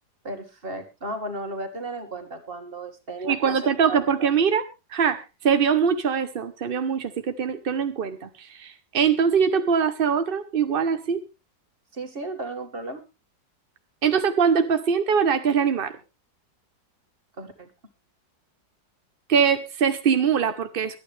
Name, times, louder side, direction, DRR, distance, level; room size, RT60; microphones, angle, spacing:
voice 1, 0.2-3.6 3.9-4.3 11.9-13.0 17.4-17.7, right 2 dB, 30° right, 6 dB, 2.1 m, -34 dB
voice 2, 3.2-4.6 4.9-5.2 5.4-11.2 14.0-15.9 19.3-21.0, right 6 dB, 50° right, 9 dB, 0.7 m, -22 dB
23.5 x 9.3 x 3.3 m, 0.29 s
omnidirectional pair, 2.0 m